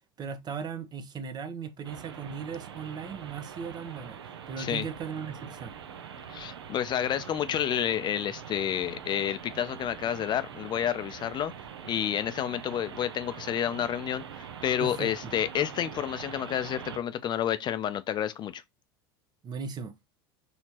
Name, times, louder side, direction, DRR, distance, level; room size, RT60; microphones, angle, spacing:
voice 1, 0.2-4.2 4.5-5.7 14.8-15.1 19.4-19.9, right 6 dB, 30° right, 0.7 m, -37 dB
sound 1, 1.8-17.0, right 8 dB, 85° right, 0.6 m, -44 dB
voice 2, 6.3-11.5 11.8-18.6, left 10 dB, 35° left, 0.4 m, -30 dB
4.3 x 2.8 x 2.9 m
hypercardioid pair, 85°, 13 cm